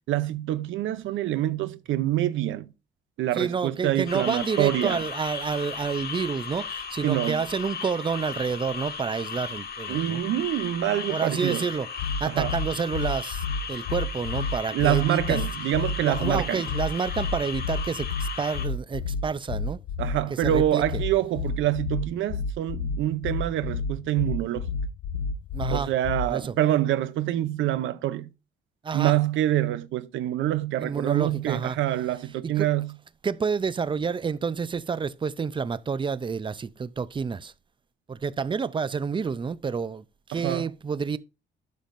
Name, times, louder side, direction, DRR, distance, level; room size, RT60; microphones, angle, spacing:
voice 1, 0.1-2.7 3.2-5.0 7.0-7.4 9.9-11.6 12.2-12.6 14.7-16.6 20.0-24.7 25.7-28.3 28.9-32.9 40.3-40.7, right 13 dB, 80° right, 0.6 m, -26 dB
voice 2, 3.3-10.2 11.1-11.9 12.2-15.4 16.0-19.8 20.4-20.8 25.5-25.9 26.3-26.5 28.8-29.2 30.8-31.8 32.4-32.7 33.2-37.5 38.1-41.2, right 5 dB, 25° right, 0.5 m, -29 dB
sound 1, 4.1-18.7, left 6 dB, 55° left, 1.7 m, -36 dB
sound 2, 12.0-26.5, left 4 dB, 85° left, 0.6 m, -30 dB
11.5 x 5.3 x 2.5 m
cardioid pair, 90°, 20 cm